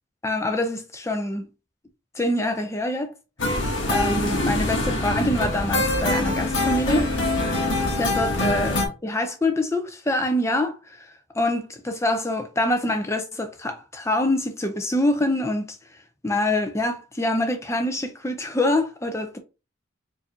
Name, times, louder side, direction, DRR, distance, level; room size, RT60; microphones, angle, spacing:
voice 1, 0.2-1.5 2.1-3.1 3.9-7.1 7.9-8.8 9.0-10.7 11.0-11.1 11.3-15.8 16.2-19.4, left 1 dB, 15° left, 0.5 m, -25 dB
sound 1, 3.4-8.9, left 2 dB, 60° left, 1.1 m, -24 dB
4.6 x 2.6 x 2.7 m
head